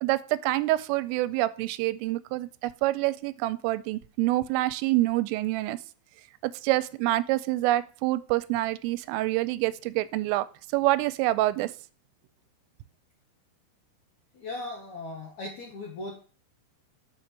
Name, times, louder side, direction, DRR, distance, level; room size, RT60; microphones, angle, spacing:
voice 1, 0.0-5.8 6.4-10.5 10.7-11.7, right 17 dB, 90° right, 3.2 m, -26 dB
voice 2, 14.3-16.2, left 2 dB, 70° left, 1.8 m, -38 dB
6.9 x 6.1 x 7.4 m
omnidirectional pair, 5.7 m